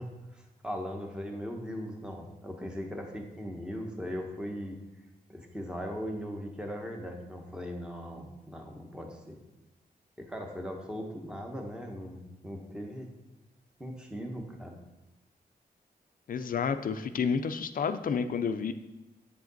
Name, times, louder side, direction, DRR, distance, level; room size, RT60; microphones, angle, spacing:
voice 1, 0.0-4.8 5.3-9.4 10.2-13.1 13.8-14.8, equal, 5° right, 2 dB, 0.9 m, -39 dB
voice 2, 16.3-18.7, left 6 dB, 55° left, 10 dB, 0.4 m, -30 dB
8.1 x 5.0 x 3.9 m, 1.0 s
wide cardioid pair, 175°, 17 cm